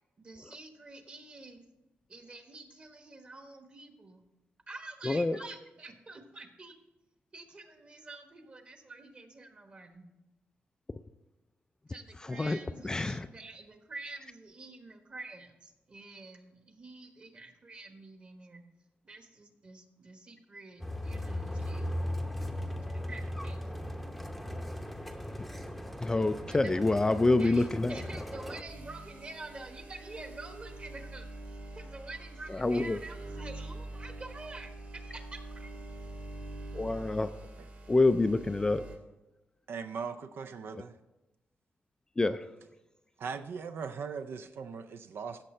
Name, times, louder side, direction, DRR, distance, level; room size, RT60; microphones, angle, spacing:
voice 1, 0.2-1.6 2.1-4.2 4.7-6.7 7.3-10.1 11.9-18.6 19.0-21.9 22.8-23.7 26.4-26.8 27.4-35.7, right 2 dB, 30° right, 6 dB, 1.2 m, -48 dB
voice 2, 5.1-5.4 12.4-12.6 12.8-13.3 26.0-28.0 32.6-33.0 36.7-37.3 37.9-38.8 42.2-42.4, left 2 dB, 15° left, 10 dB, 0.3 m, -26 dB
sound 1, 20.8-28.6, left 1 dB, ahead, 0.7 m, -38 dB
sound 2, 28.7-39.0, right 2 dB, 45° right, 1.9 m, -45 dB
voice 3, 39.7-41.0 43.2-45.4, right 6 dB, 65° right, 9 dB, 0.5 m, -39 dB
15.0 x 6.7 x 4.3 m, 1.0 s
wide cardioid pair, 135°, 4 cm